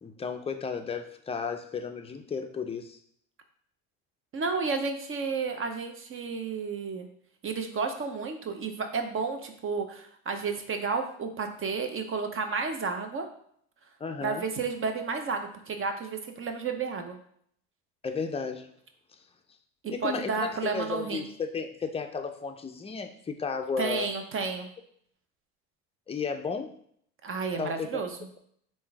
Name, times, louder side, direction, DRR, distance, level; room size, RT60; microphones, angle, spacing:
voice 1, 0.0-3.0 14.0-14.5 18.0-18.7 19.9-24.1 26.1-26.7 27.6-28.0, left 5 dB, 15° left, 5 dB, 0.5 m, -33 dB
voice 2, 4.3-7.1 7.4-13.3 14.2-17.2 20.0-21.3 23.8-24.7 27.2-28.1, right 4 dB, 35° right, 5 dB, 0.7 m, -31 dB
3.7 x 2.7 x 4.6 m, 0.65 s
supercardioid pair, 90°, 36 cm